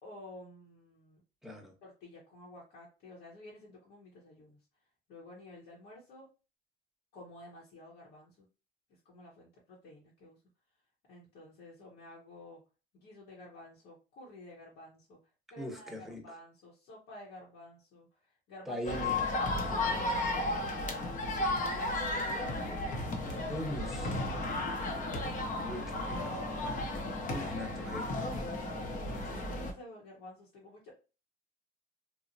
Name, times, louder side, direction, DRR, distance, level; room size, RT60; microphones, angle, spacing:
voice 1, 0.0-1.2 1.8-4.6 5.1-6.3 7.1-8.5 9.0-10.4 11.1-12.6 12.9-15.2 15.5-18.2 18.5-18.8 19.1-19.8 21.4-23.1 27.4-27.5 28.3-30.9, left 1 dB, 85° left, 1.0 m, -51 dB
voice 2, 1.4-1.7 15.6-16.4 18.7-19.2 20.5-21.0 23.5-24.1 25.6-26.4 27.3-28.1, left 1 dB, ahead, 0.8 m, -41 dB
sound 1, 18.8-29.7, left 2 dB, 50° left, 0.7 m, -34 dB
3.0 x 2.1 x 2.6 m
cardioid pair, 110°, 17 cm